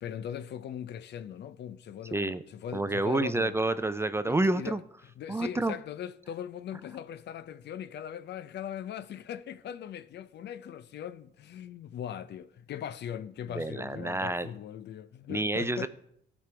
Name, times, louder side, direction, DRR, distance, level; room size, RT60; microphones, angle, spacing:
voice 1, 0.0-3.5 4.2-15.9, left 9 dB, 60° left, 0.5 m, -40 dB
voice 2, 2.1-2.4 2.7-4.8 5.3-5.7 13.5-14.5 15.3-15.9, right 2 dB, 15° right, 0.4 m, -28 dB
15.0 x 5.3 x 3.3 m
cardioid pair, 90°, 20 cm